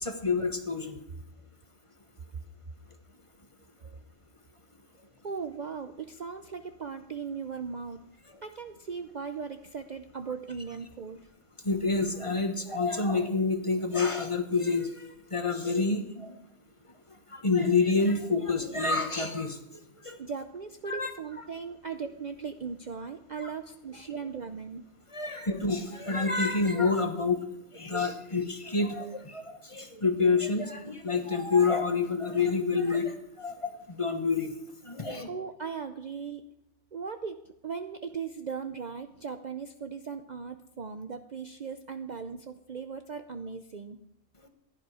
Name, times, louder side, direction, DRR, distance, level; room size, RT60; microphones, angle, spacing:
voice 1, 0.0-1.0 11.6-16.3 17.3-19.6 20.0-20.2 20.9-21.1 23.4-23.5 25.1-27.4 27.7-34.5 34.8-35.3, left 4 dB, 25° left, 6 dB, 1.2 m, -28 dB
voice 2, 5.2-8.0 8.4-11.2 20.2-24.8 35.2-36.4 36.9-37.4 37.6-44.0, right 6 dB, 45° right, 8 dB, 0.6 m, -38 dB
15.0 x 11.0 x 4.9 m, 0.85 s
omnidirectional pair, 1.3 m